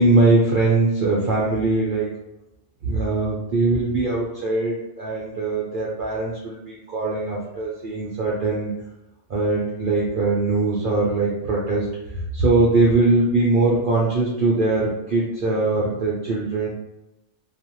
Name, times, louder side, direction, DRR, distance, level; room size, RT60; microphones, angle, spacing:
voice 1, 0.0-2.1 2.8-8.7 9.3-11.9 12.1-16.7, right 2 dB, 70° right, -5 dB, 0.5 m, -21 dB
2.4 x 2.1 x 2.8 m, 0.89 s
omnidirectional pair, 1.4 m